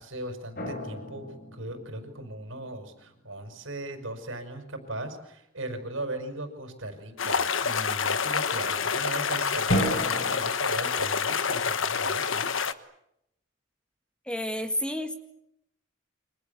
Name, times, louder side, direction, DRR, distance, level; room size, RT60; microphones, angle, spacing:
voice 1, 0.0-12.5, right 1 dB, 85° right, 7 dB, 5.7 m, -38 dB
sound 1, 0.6-2.6 9.7-10.4, equal, 50° left, 4.8 m, -31 dB
sound 2, 7.2-12.7, left 6 dB, 80° left, 1.3 m, -27 dB
voice 2, 14.3-15.2, left 1 dB, 5° left, 7 dB, 1.8 m, -30 dB
29.5 x 25.0 x 7.1 m, 0.79 s
head